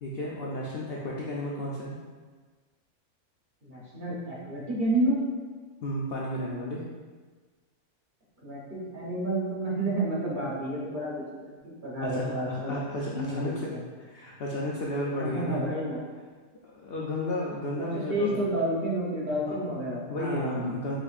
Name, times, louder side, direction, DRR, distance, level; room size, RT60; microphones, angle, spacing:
voice 1, 0.0-2.0 5.8-6.8 12.0-13.7 14.0-15.6 16.8-18.6 19.5-21.0, left 1 dB, 65° left, -4 dB, 0.6 m, -33 dB
voice 2, 3.6-5.2 8.4-12.8 13.1-13.8 15.2-16.0 17.8-20.8, right 1 dB, 40° right, -6 dB, 0.9 m, -30 dB
7.2 x 2.6 x 2.4 m, 1.4 s
omnidirectional pair, 1.6 m